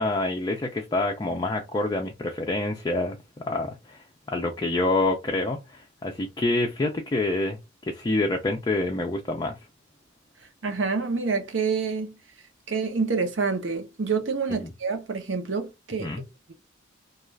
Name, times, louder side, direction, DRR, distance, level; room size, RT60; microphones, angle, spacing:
voice 1, 0.0-3.2 3.5-9.6 14.6-14.7 16.0-16.2, left 2 dB, 20° left, 0.4 m, -27 dB
voice 2, 10.6-12.2 12.7-16.1, right 4 dB, 65° right, 0.7 m, -27 dB
2.4 x 2.3 x 3.1 m
head